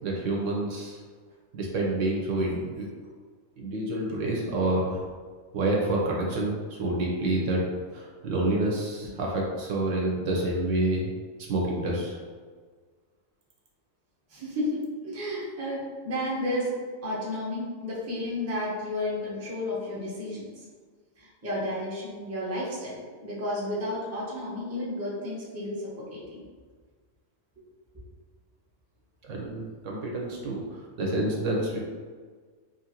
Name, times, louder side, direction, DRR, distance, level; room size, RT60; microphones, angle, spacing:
voice 1, 0.0-1.0 1.5-2.9 3.6-5.0 5.5-7.6 7.9-11.1 11.4-12.2 29.2-31.8, right 2 dB, 75° right, -2 dB, 0.9 m, -28 dB
voice 2, 14.3-16.7 17.0-20.7 21.2-26.4, left 1 dB, 15° right, -7 dB, 0.5 m, -32 dB
2.9 x 2.5 x 2.8 m, 1.5 s
omnidirectional pair, 1.4 m